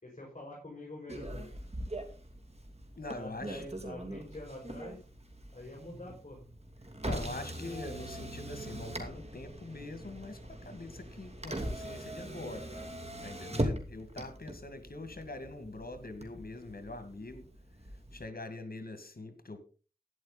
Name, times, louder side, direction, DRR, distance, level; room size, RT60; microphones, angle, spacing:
voice 1, 0.0-1.5 3.1-5.0 5.5-6.4 12.7-12.9, left 1 dB, 45° left, -3 dB, 6.1 m, -46 dB
Motor vehicle (road), 1.1-18.2, right 1 dB, 45° right, 2.8 m, -41 dB
voice 2, 3.0-3.6 7.0-12.8 13.2-17.5 18.1-19.6, left 2 dB, 80° left, 9 dB, 2.2 m, -43 dB
12.5 x 10.5 x 4.1 m, 0.36 s
wide cardioid pair, 40°, 15 cm